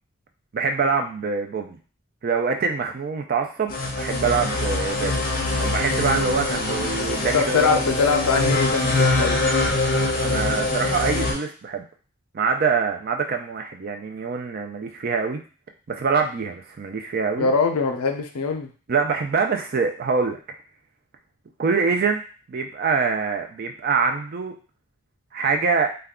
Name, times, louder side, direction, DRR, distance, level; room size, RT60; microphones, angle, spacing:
voice 1, 0.5-1.8 2.2-5.2 5.6-7.8 10.2-11.8 12.3-15.4 15.9-17.5 18.9-20.4 21.6-22.2 22.5-24.6 25.3-25.9, right 5 dB, 40° right, 4 dB, 0.3 m, -24 dB
sound 1, 3.7-11.3, left 2 dB, 40° left, 0.5 m, -23 dB
voice 2, 7.3-9.5 17.4-18.7, left 5 dB, 85° left, 5 dB, 0.5 m, -22 dB
2.3 x 2.2 x 3.5 m, 0.38 s
head